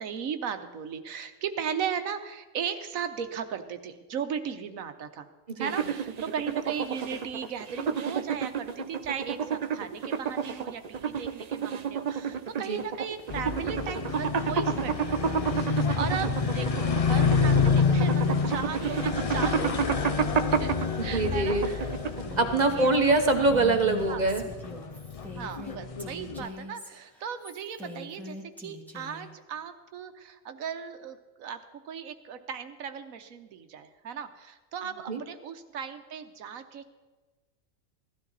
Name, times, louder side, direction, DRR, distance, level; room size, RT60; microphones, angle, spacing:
voice 1, 0.0-5.3 5.6-20.7 21.0-21.9 22.7-23.2 24.1-24.2 25.4-37.0, right 7 dB, 80° right, 9 dB, 1.3 m, -37 dB
sound 1, 5.6-22.5, right 6 dB, 55° right, 0.4 m, -31 dB
sound 2, 13.3-26.5, left 5 dB, 40° left, 0.5 m, -28 dB
voice 2, 21.0-21.7 22.4-24.4 35.1-35.2, right 2 dB, 35° right, 5 dB, 1.1 m, -24 dB
Female speech woman speaking, 22.3-29.3, left 1 dB, ahead, 1.6 m, -43 dB
16.5 x 12.5 x 4.0 m, 1.2 s
omnidirectional pair, 1.4 m